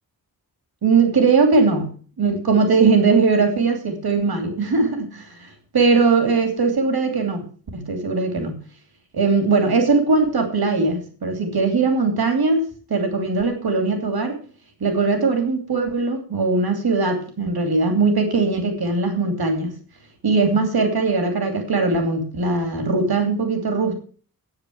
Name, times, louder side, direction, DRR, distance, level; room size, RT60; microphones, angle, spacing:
voice 1, 0.8-1.9 2.2-8.6 9.1-12.6 12.9-14.4 14.8-19.7 20.2-24.0, right 4 dB, 90° right, 5 dB, 2.8 m, -20 dB
9.7 x 8.9 x 7.8 m, 0.42 s
wide cardioid pair, 90°, 36 cm